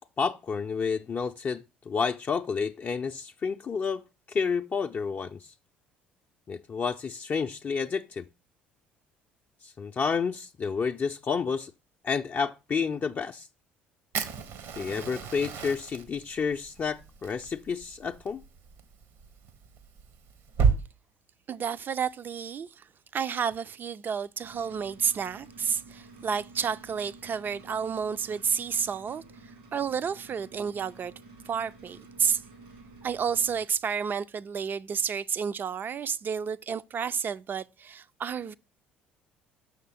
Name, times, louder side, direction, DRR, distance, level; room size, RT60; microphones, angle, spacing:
voice 1, 0.2-4.0 4.3-5.5 6.5-8.2 9.6-11.7 12.0-13.5 14.8-18.4, left 5 dB, 35° left, 0.5 m, -30 dB
Fire, 14.1-20.8, right 6 dB, 60° right, 1.0 m, -32 dB
voice 2, 21.5-22.9 23.1-29.2 29.7-31.1 31.5-32.4 33.0-38.5, right 7 dB, 40° right, 0.4 m, -31 dB
sound 1, 24.4-33.6, right 3 dB, 80° right, 2.1 m, -51 dB
6.6 x 6.4 x 3.4 m
hypercardioid pair, 55°, 5 cm